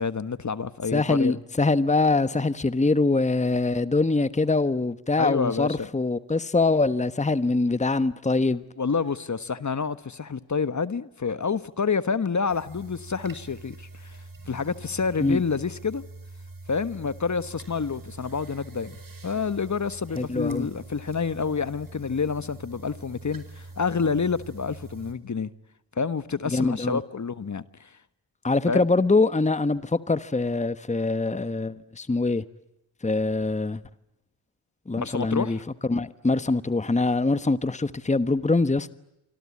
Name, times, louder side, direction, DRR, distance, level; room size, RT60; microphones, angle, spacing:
voice 1, 0.0-1.3 5.2-5.9 8.8-16.0 16.7-25.5 26.0-28.0 28.7-28.8 35.0-35.6, left 5 dB, 40° left, 1.4 m, -28 dB
voice 2, 0.9-8.6 15.2-15.4 20.2-20.7 26.5-27.0 28.4-32.4 33.0-33.8 34.9-35.6 35.9-38.9, left 3 dB, 15° left, 1.2 m, -23 dB
sound 1, 12.5-25.1, right 2 dB, 45° right, 5.3 m, -44 dB
26.5 x 25.5 x 8.5 m
cardioid pair, 50°, 45 cm